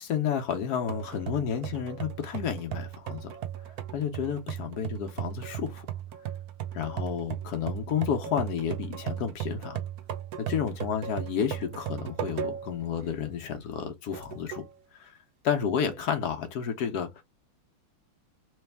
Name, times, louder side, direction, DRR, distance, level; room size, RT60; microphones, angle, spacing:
voice 1, 0.0-3.3 3.9-5.9 6.7-9.8 10.4-14.6 14.9-15.2 15.4-17.2, left 8 dB, 65° left, 1.0 m, -31 dB
sound 1, 0.9-12.8 13.3-13.4 14.1-14.7, right 10 dB, 75° right, 0.8 m, -37 dB
3.3 x 3.1 x 3.4 m
omnidirectional pair, 2.4 m